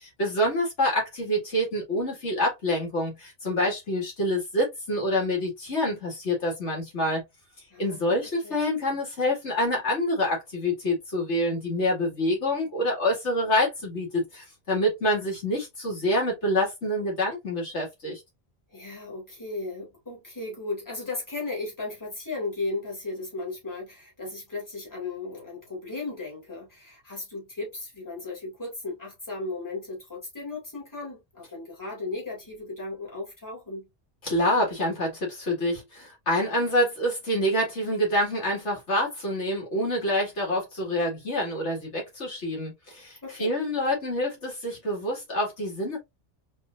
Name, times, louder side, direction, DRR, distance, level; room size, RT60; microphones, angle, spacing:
voice 1, 0.0-7.2 7.8-18.2 34.2-46.0, left 1 dB, 80° left, 2.3 m, -27 dB
voice 2, 7.7-8.0 8.4-8.6 18.7-33.9 43.2-43.5, left 3 dB, 15° left, 2.3 m, -35 dB
4.3 x 3.4 x 2.5 m
omnidirectional pair, 1.2 m